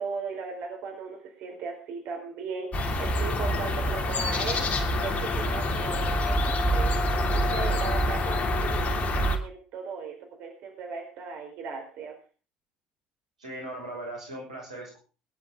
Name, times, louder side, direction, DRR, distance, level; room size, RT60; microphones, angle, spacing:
voice 1, 0.0-7.0 7.3-12.1, right 5 dB, 60° right, 3 dB, 4.4 m, -37 dB
sound 1, 2.7-9.4, left 1 dB, 40° left, 2.9 m, -26 dB
voice 2, 13.4-15.0, right 1 dB, 90° right, 0 dB, 5.4 m, -38 dB
20.5 x 11.0 x 3.7 m, 0.35 s
hypercardioid pair, 60°, 4 cm